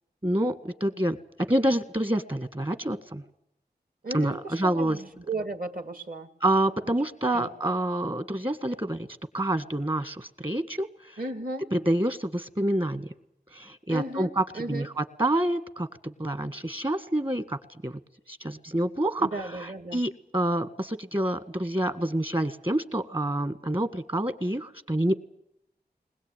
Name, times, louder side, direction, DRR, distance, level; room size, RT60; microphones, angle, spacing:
voice 1, 0.2-1.2 1.5-3.2 4.1-5.0 6.4-9.1 9.3-11.2 11.7-13.1 13.5-17.6 17.8-17.9 18.3-25.1, right 1 dB, 30° right, 12 dB, 1.6 m, -27 dB
voice 2, 4.0-6.3 7.3-7.5 11.2-11.6 13.9-14.9 19.2-20.0, right 2 dB, 55° right, 9 dB, 2.3 m, -35 dB
20.5 x 20.5 x 9.1 m, 0.77 s
wide cardioid pair, 65°, 17 cm